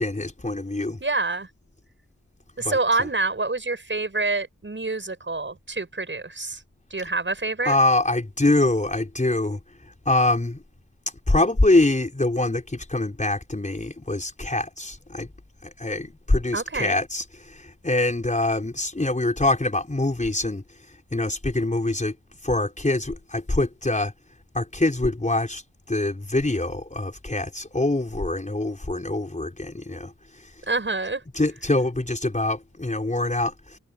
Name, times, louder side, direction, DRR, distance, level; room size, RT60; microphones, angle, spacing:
voice 1, 0.0-1.0 2.6-3.1 7.6-9.6 10.0-10.6 11.3-15.3 15.6-20.6 21.1-22.1 22.4-24.1 24.5-25.6 25.9-30.1 31.3-33.8, left 2 dB, 25° left, 5.0 m, -24 dB
voice 2, 1.0-1.5 2.6-6.6 6.9-7.8 16.5-17.0 30.7-31.2, right 3 dB, 35° right, 7.4 m, -27 dB
cardioid pair, 45°, 31 cm